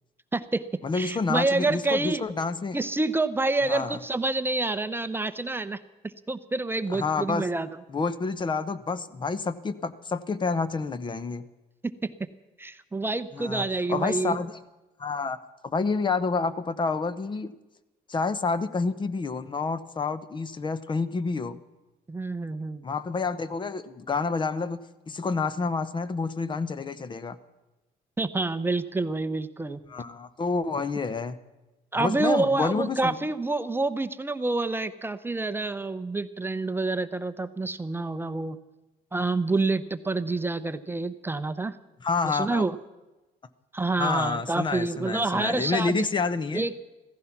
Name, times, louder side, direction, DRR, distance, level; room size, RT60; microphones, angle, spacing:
voice 1, 0.3-2.2 2.7-5.8 6.3-7.7 11.8-12.1 12.6-14.4 22.1-22.8 28.2-29.8 31.9-38.6 39.1-41.8 42.2-42.8 43.7-46.1 46.5-46.8, right 3 dB, 15° right, 11 dB, 0.7 m, -28 dB
voice 2, 0.8-2.8 3.6-4.0 6.9-7.5 7.9-11.4 13.3-14.6 15.0-15.4 15.6-17.5 18.1-21.6 22.8-24.8 25.1-27.4 29.9-31.4 31.9-33.1 42.0-42.6 44.0-46.6, left 4 dB, 30° left, 15 dB, 0.9 m, -28 dB
15.5 x 15.0 x 5.9 m, 1.1 s
cardioid pair, 110°, 17 cm